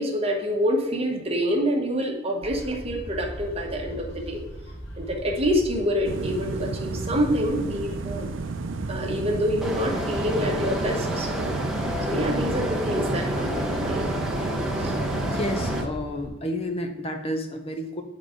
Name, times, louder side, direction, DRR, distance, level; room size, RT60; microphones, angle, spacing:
voice 1, 0.0-4.4 5.0-8.3 8.9-11.5 12.1-14.1 14.8-14.9, equal, 30° right, 1 dB, 1.1 m, -27 dB
sound 1, 2.4-16.3, equal, 60° left, 1.7 m, -39 dB
sound 2, 6.0-15.9, right 3 dB, 85° right, 0.5 m, -33 dB
sound 3, 9.6-15.8, equal, ahead, 1.0 m, -29 dB
voice 2, 15.2-18.0, left 1 dB, 30° left, 4 dB, 0.7 m, -31 dB
8.7 x 3.8 x 5.0 m, 1.0 s
head